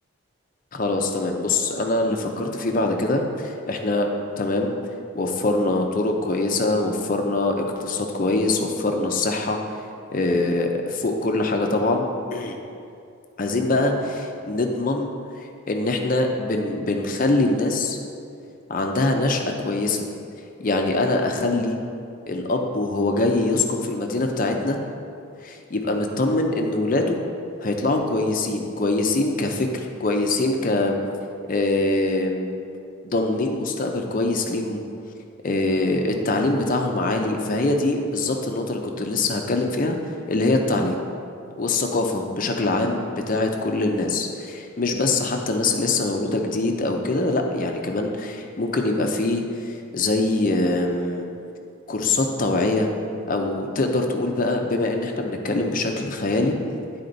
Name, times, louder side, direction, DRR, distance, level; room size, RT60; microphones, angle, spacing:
voice 1, 0.7-4.1 4.4-4.7 5.1-9.6 10.1-12.6 13.4-15.1 15.7-18.0 18.7-20.0 20.6-21.8 22.3-24.8 25.4-27.2 27.6-31.0 31.5-32.6 33.0-34.8 35.4-40.0 40.3-41.0 41.6-51.3 51.9-52.9 53.3-56.6, left 2 dB, 40° left, 3 dB, 0.5 m, -23 dB
10.0 x 4.2 x 3.9 m, 2.5 s
head